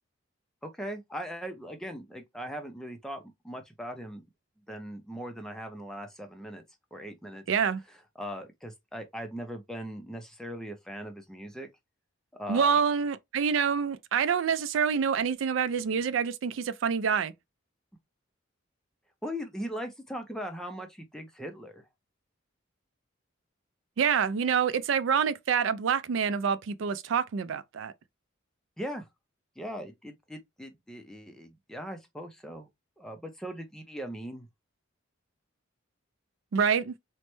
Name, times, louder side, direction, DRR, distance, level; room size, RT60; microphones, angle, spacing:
voice 1, 0.6-4.2 4.7-6.6 6.9-7.4 8.2-11.7 12.4-12.8 19.2-21.8 28.8-29.1 29.6-32.7 33.0-34.5, equal, 5° left, 0.5 m, -39 dB
voice 2, 7.5-7.8 12.5-17.3 24.0-27.9 36.5-36.9, right 6 dB, 70° right, 0.4 m, -27 dB
3.1 x 2.1 x 2.9 m
head